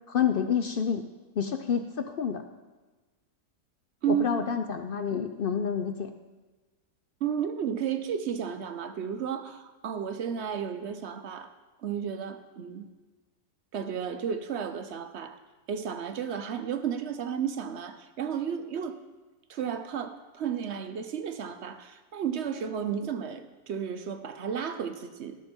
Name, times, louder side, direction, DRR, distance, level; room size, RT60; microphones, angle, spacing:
voice 1, 0.1-1.0 1.4-2.4 4.1-6.1, left 7 dB, 75° left, 7 dB, 0.5 m, -28 dB
voice 2, 7.2-11.5 11.8-12.9 13.7-15.4 15.7-19.0 19.5-25.4, right 8 dB, 60° right, 9 dB, 0.8 m, -33 dB
18.0 x 6.1 x 4.4 m, 1.2 s
omnidirectional pair, 1.7 m